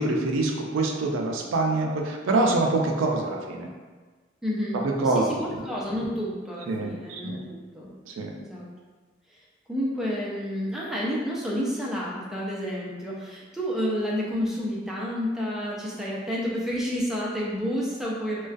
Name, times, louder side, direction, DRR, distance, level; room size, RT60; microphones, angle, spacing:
voice 1, 0.0-3.7 4.8-5.3 6.7-7.4 8.1-8.3, right 2 dB, 85° right, 1 dB, 0.4 m, -25 dB
voice 2, 4.4-7.9 8.4-8.7 9.3-9.4 9.7-18.5, equal, ahead, -5 dB, 0.4 m, -30 dB
2.3 x 2.2 x 2.4 m, 1.4 s
head